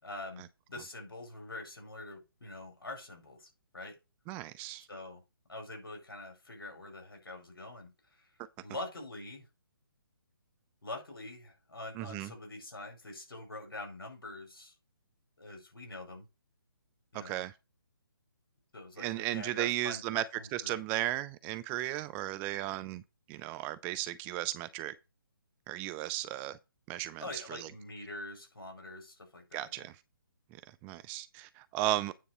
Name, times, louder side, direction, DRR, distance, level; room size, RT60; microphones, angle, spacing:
voice 1, 0.0-4.0 4.9-5.2 5.5-8.3 8.6-9.4 10.8-14.7 15.4-16.2 17.1-17.4 18.7-20.8 27.2-29.9, left 2 dB, 80° left, 5.3 m, -45 dB
voice 2, 4.3-4.9 11.9-12.3 17.1-17.5 19.0-20.2 20.5-23.0 23.3-24.9 25.7-26.6 26.9-27.7 29.5-30.0 30.8-32.1, right 15 dB, 15° right, 0.4 m, -35 dB
9.3 x 4.1 x 6.8 m
figure-of-eight pair, 145°, 12 cm